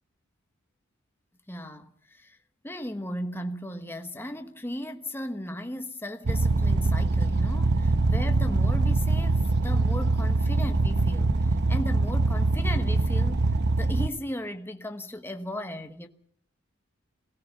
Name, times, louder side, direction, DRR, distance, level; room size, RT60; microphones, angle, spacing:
voice 1, 1.5-2.4 2.6-16.1, left 1 dB, 10° left, 1.1 m, -36 dB
sound 1, 6.3-14.1, right 2 dB, 55° right, 0.9 m, -23 dB
23.0 x 17.0 x 6.9 m
head